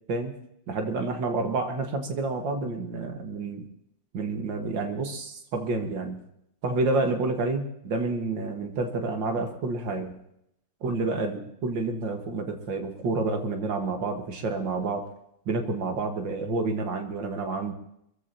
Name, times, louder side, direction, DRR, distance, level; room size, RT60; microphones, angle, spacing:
voice 1, 0.7-3.7 4.1-6.2 6.6-10.1 10.8-15.1 15.5-17.7, right 3 dB, 75° right, 3 dB, 2.3 m, -29 dB
24.0 x 15.0 x 2.9 m, 0.77 s
omnidirectional pair, 2.0 m